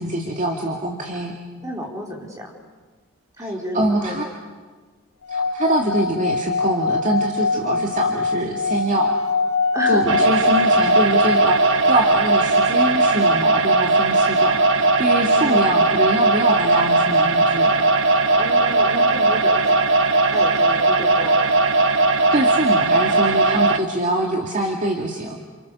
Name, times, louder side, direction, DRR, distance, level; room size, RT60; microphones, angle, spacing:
voice 1, 0.0-1.4 3.7-4.3 5.3-9.2 9.9-17.8 22.3-25.4, right 1 dB, 35° right, 1 dB, 2.3 m, -24 dB
voice 2, 1.6-2.5 3.4-4.2 7.5-7.9 9.7-10.1 15.2-15.9 18.3-19.9 20.3-21.5, equal, 15° right, -1 dB, 4.8 m, -31 dB
Singing / Glass, 5.2-11.8, left 4 dB, 85° left, 1.6 m, -23 dB
sound 1, 10.1-23.8, right 3 dB, 60° right, 1.3 m, -18 dB
29.5 x 29.0 x 7.0 m, 1.4 s
head